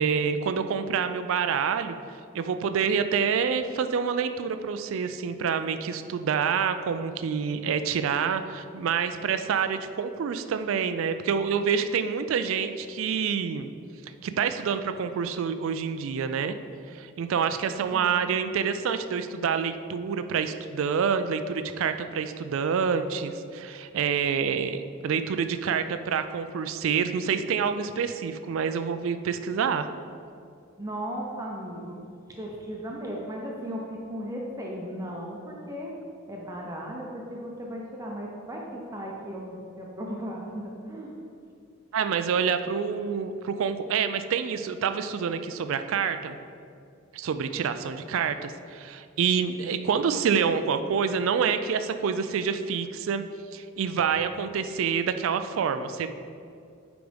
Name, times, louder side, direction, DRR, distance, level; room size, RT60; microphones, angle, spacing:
voice 1, 0.0-1.9 2.3-13.7 14.2-16.5 16.9-29.9 41.9-46.4 47.1-53.2 53.5-56.2, right 6 dB, 70° right, 10 dB, 0.3 m, -27 dB
voice 2, 17.9-18.3 30.8-32.0 32.4-35.9 36.3-41.1, equal, 15° right, -2 dB, 0.6 m, -36 dB
7.9 x 5.1 x 3.4 m, 2.4 s
head